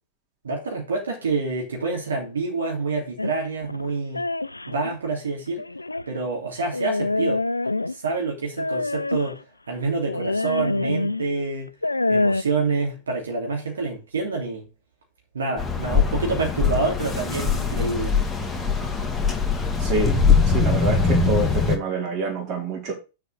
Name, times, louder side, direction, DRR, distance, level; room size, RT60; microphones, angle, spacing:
voice 1, 0.4-4.2 4.7-5.6 6.1-7.4 7.9-9.4 9.7-11.7 12.1-14.7 15.3-18.2, right 3 dB, 75° right, 3.2 m, -27 dB
sound 1, 3.2-4.9 5.6-6.1 6.7-8.1 8.6-9.4 10.1-11.2 11.7-12.4, left 2 dB, 90° left, 0.4 m, -26 dB
sound 2, 15.6-21.8, left 5 dB, 5° left, 1.9 m, -22 dB
voice 2, 19.8-22.9, right 2 dB, 40° right, 4.1 m, -27 dB
6.9 x 5.7 x 6.4 m
figure-of-eight pair, 95°, 0 cm